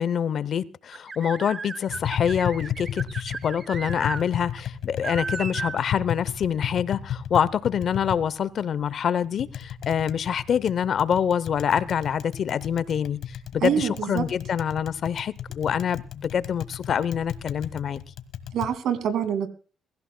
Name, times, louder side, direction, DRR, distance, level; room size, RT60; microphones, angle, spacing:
voice 1, 0.0-18.0, left 8 dB, 60° left, 0.7 m, -26 dB
sound 1, 0.9-4.2 4.6-4.7 5.0-5.8, right 4 dB, 35° right, 1.0 m, -35 dB
Tap, 1.9-18.7, left 9 dB, 80° left, 1.4 m, -35 dB
voice 2, 13.6-14.2 18.5-19.5, right 8 dB, 75° right, 2.3 m, -25 dB
23.0 x 15.5 x 2.2 m
cardioid pair, 90°, 0 cm